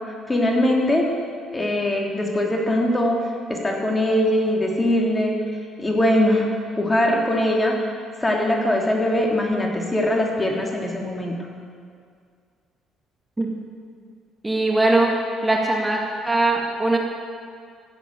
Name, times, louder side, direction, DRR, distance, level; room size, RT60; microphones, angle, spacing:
voice 1, 0.1-1.1 1.5-3.2 3.5-5.3 5.8-7.8 8.2-11.3, left 1 dB, 20° left, 0 dB, 3.2 m, -21 dB
voice 2, 14.4-15.1 15.4-16.0 16.2-17.0, right 2 dB, 15° right, -1 dB, 2.1 m, -20 dB
15.5 x 8.1 x 8.4 m, 2.2 s
supercardioid pair, 60°, 0 cm